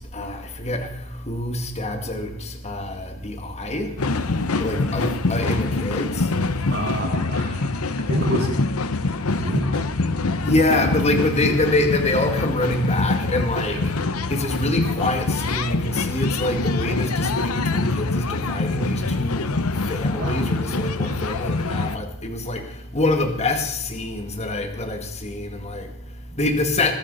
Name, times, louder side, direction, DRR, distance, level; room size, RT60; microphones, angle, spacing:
voice 1, 0.0-4.0 4.3-6.7 10.4-14.0 14.3-26.9, left 2 dB, 30° left, 1.9 m, -25 dB
sound 1, 4.0-22.0, left 3 dB, 85° left, 0.9 m, -25 dB
voice 2, 6.7-7.7 8.0-8.6 9.3-9.9 13.7-13.8 20.2-20.6 21.0-21.3, right 1 dB, 50° right, 4.9 m, -28 dB
20.5 x 13.0 x 4.2 m
head